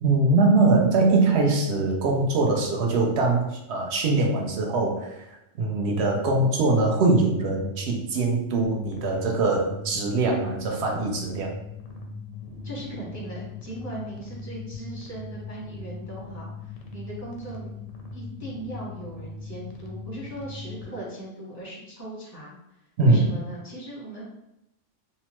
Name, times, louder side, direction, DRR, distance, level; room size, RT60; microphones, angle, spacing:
voice 1, 0.0-5.3 5.6-11.5 23.0-23.2, right 3 dB, 65° right, 0 dB, 0.8 m, -22 dB
sound 1, 8.6-20.8, left 4 dB, 90° left, 1.0 m, -40 dB
voice 2, 12.6-17.7 18.1-22.5 23.0-24.2, right 1 dB, 20° right, -6 dB, 0.6 m, -38 dB
2.8 x 2.1 x 2.9 m, 0.87 s
omnidirectional pair, 1.3 m